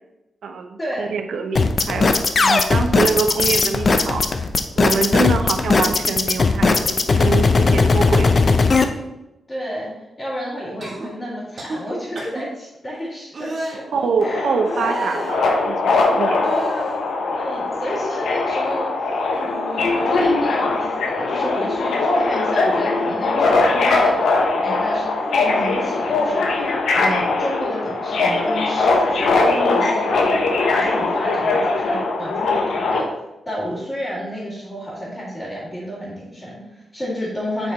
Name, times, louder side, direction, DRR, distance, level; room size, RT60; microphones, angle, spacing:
voice 1, 0.4-4.5 4.8-8.4 13.9-16.5, right 4 dB, 75° right, 6 dB, 0.7 m, -25 dB
sound 1, 1.6-8.8, left 4 dB, 40° left, 0.5 m, -17 dB
voice 2, 7.6-7.9 9.5-14.5 17.3-18.9 19.4-24.1 24.6-30.4 30.7-33.1 33.5-37.7, equal, 20° left, -11 dB, 2.4 m, -31 dB
sound 2, 10.8-11.1 11.6-11.8 12.1-12.4 13.3-13.8 14.6-15.4 16.4-17.0 17.5-18.3 18.6-18.9 19.3-20.1 21.4-21.5, right 2 dB, 45° right, 1.6 m, -32 dB
Subway metro underground, 14.2-33.0, left 3 dB, 85° left, 1.0 m, -20 dB
7.6 x 4.6 x 4.0 m, 0.95 s
wide cardioid pair, 130°, 0 cm